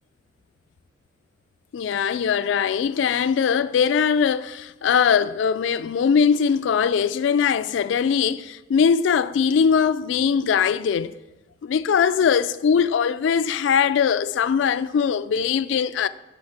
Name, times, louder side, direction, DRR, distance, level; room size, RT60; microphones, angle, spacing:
voice 1, 1.7-11.1 11.6-16.1, left 7 dB, 70° left, 0.3 m, -21 dB
7.5 x 4.0 x 5.9 m
head